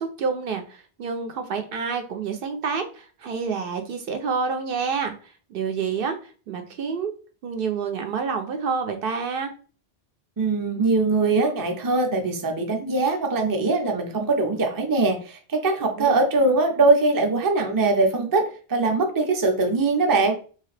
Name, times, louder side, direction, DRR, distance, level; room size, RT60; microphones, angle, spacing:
voice 1, 0.0-7.1 7.4-9.5 16.0-16.2, right 5 dB, 65° right, 7 dB, 0.7 m, -28 dB
voice 2, 10.4-20.4, right 3 dB, 25° right, 3 dB, 0.5 m, -22 dB
3.1 x 2.8 x 3.2 m, 0.38 s
omnidirectional pair, 1.1 m